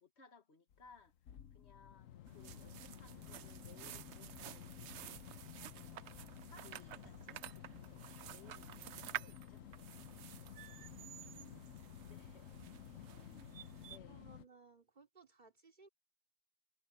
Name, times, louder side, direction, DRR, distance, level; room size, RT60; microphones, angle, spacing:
voice 1, 0.0-5.1 5.7-9.6 12.1-12.6 13.0-13.5 13.9-14.3, left 5 dB, 55° left, 2.0 m, -63 dB
sound 1, 0.7-14.4, left 10 dB, 80° left, 1.2 m, -54 dB
sound 2, 2.2-14.0, right 12 dB, 65° right, 0.8 m, -51 dB
voice 2, 10.9-11.6 12.3-12.4 14.1-15.9, right 4 dB, 35° right, 3.0 m, -62 dB
omnidirectional pair, 1.4 m